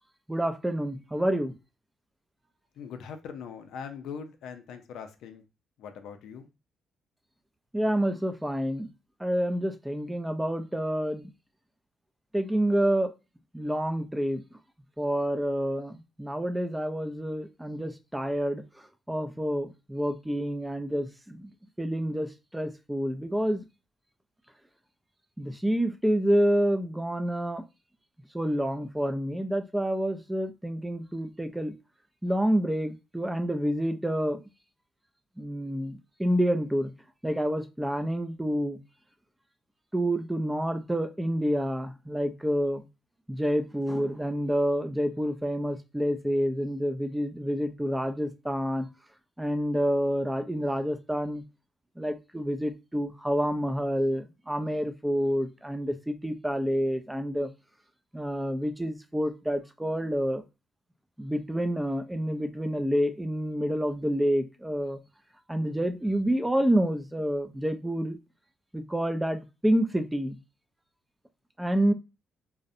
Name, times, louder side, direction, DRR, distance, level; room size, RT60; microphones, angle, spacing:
voice 1, 0.3-1.5 7.7-8.9 9.2-11.3 12.3-13.1 13.5-14.4 15.0-18.6 19.1-21.5 21.8-23.6 25.4-27.6 28.3-31.7 32.2-34.4 35.4-36.9 37.2-38.8 39.9-42.8 43.3-48.9 49.4-51.4 52.0-57.5 58.1-60.4 61.2-65.0 65.5-68.2 68.7-70.4 71.6-71.9, equal, 10° right, 0.4 m, -28 dB
voice 2, 2.8-5.4 5.8-6.5, left 6 dB, 80° left, 0.4 m, -41 dB
2.6 x 2.0 x 2.5 m
cardioid pair, 90°, 0 cm